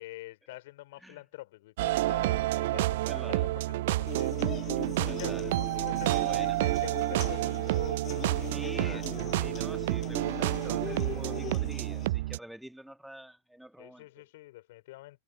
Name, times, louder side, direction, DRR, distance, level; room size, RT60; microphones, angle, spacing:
voice 1, 0.0-9.1 13.8-15.2, left 18 dB, 50° left, 4.4 m, -46 dB
sound 1, 1.8-12.4, right 17 dB, 55° right, 0.4 m, -29 dB
voice 2, 3.1-3.4 5.0-5.5 6.1-6.6 8.5-9.0 9.4-14.2, right 1 dB, ahead, 1.7 m, -46 dB
sound 2, 4.1-12.1, left 11 dB, 30° left, 4.6 m, -41 dB
figure-of-eight pair, 90°, 0 cm